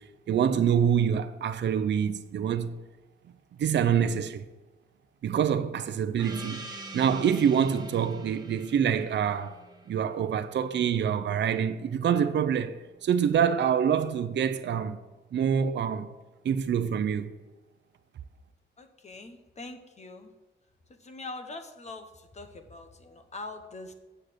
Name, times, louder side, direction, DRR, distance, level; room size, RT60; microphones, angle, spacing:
voice 1, 0.3-2.7 3.6-4.4 5.2-6.7 6.9-9.6 9.9-15.0 15.3-16.1 16.4-17.3, right 8 dB, 65° right, 0.6 m, -26 dB
Gong, 6.2-11.3, right 2 dB, 20° right, 1.3 m, -45 dB
voice 2, 18.8-20.3 20.9-23.9, left 2 dB, 35° left, 1.1 m, -43 dB
8.8 x 6.5 x 7.8 m
wide cardioid pair, 145°, 20 cm